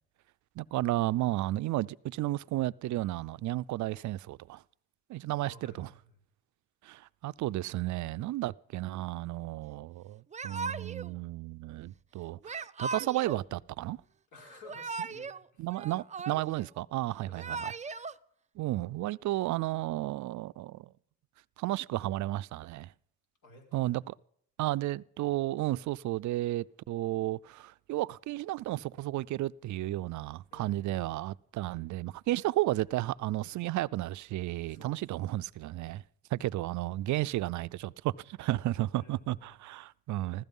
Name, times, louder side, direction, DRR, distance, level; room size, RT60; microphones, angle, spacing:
voice 1, 0.6-4.6 5.1-5.9 6.8-14.0 15.6-17.7 18.6-20.9 21.6-22.9 23.7-24.1 24.6-36.0 36.3-40.4, right 16 dB, 70° right, 0.5 m, -33 dB
voice 2, 5.4-6.2 14.3-15.7 17.3-17.8 23.4-24.0 30.5-31.2 34.6-35.2 39.0-39.6, left 3 dB, 75° left, 5.6 m, -55 dB
Yell / Crying sobbing, 10.3-11.1 12.4-13.4 14.5-15.4 15.7-16.7 17.2-18.1, right 4 dB, 25° right, 0.5 m, -38 dB
15.5 x 13.5 x 5.4 m
cardioid pair, 90°, 30 cm